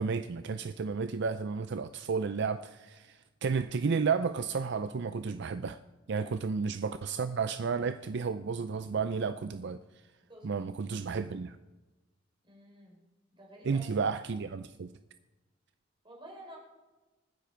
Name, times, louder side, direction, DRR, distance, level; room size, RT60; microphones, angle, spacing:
voice 1, 0.0-5.8 6.1-9.8 10.4-11.6 13.6-14.9, right 5 dB, 60° right, 0.5 m, -32 dB
voice 2, 12.4-13.0 13.4-13.8 16.0-16.6, right 1 dB, 25° right, 4.2 m, -50 dB
25.5 x 10.0 x 4.5 m
head